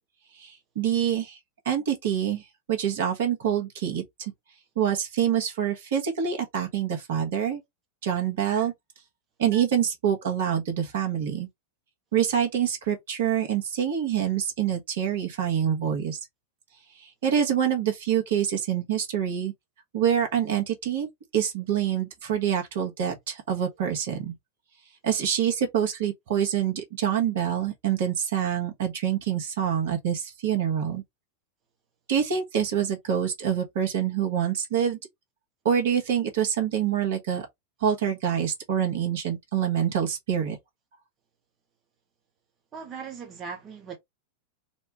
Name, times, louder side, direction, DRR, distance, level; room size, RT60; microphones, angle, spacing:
voice 1, 0.3-1.4 1.6-4.3 4.8-7.6 8.0-8.7 9.4-11.5 12.1-16.2 17.0-19.5 19.9-24.3 25.0-31.0 32.1-35.0 35.6-37.5 37.8-40.6, right 9 dB, 55° right, 1.2 m, -26 dB
voice 2, 42.7-44.0, right 6 dB, 30° right, 1.0 m, -38 dB
4.2 x 2.2 x 3.0 m
figure-of-eight pair, 90°, 0 cm